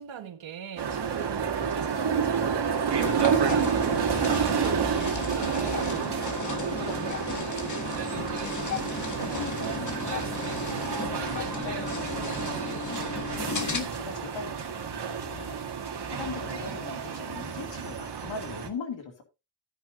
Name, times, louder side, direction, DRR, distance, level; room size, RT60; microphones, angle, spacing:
voice 1, 0.0-2.7 3.0-6.1 9.0-9.2 9.6-9.8 10.7-11.1, right 8 dB, 80° right, 1.5 m, -42 dB
sound 1, 0.8-18.7, right 7 dB, 60° right, 2.0 m, -30 dB
sound 2, 3.0-13.8, left 4 dB, 40° left, 1.7 m, -35 dB
voice 2, 5.4-12.8 13.6-15.7 16.1-19.2, left 5 dB, 75° left, 2.8 m, -41 dB
13.0 x 9.5 x 2.7 m
wide cardioid pair, 120°, 46 cm